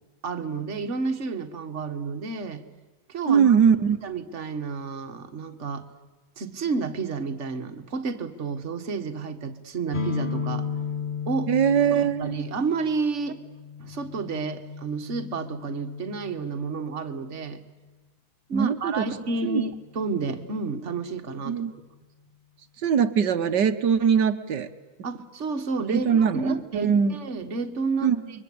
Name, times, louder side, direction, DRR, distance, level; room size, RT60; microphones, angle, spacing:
voice 1, 0.2-2.6 3.1-3.6 4.0-5.9 6.4-10.7 11.3-11.5 12.0-13.4 13.8-17.6 18.5-21.6 25.0-28.2, right 4 dB, 40° right, 7 dB, 1.7 m, -30 dB
voice 2, 3.3-4.0 11.5-12.4 18.5-19.1 19.4-19.6 21.4-21.7 22.8-24.7 25.9-27.2 28.0-28.2, right 7 dB, 60° right, 10 dB, 1.7 m, -21 dB
sound 1, 9.9-17.5, left 5 dB, 30° left, 1.2 m, -35 dB
29.5 x 23.5 x 8.6 m, 1.2 s
omnidirectional pair, 2.2 m